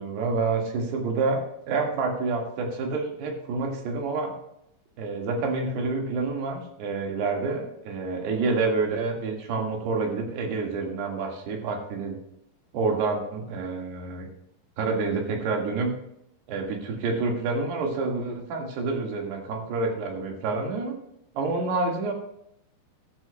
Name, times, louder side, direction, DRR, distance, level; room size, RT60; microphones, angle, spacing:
voice 1, 0.0-4.3 5.0-12.2 12.7-14.3 14.8-15.9 16.5-21.0 21.4-22.1, right 3 dB, 85° right, 1 dB, 3.8 m, -28 dB
14.5 x 12.0 x 2.2 m, 0.77 s
omnidirectional pair, 4.6 m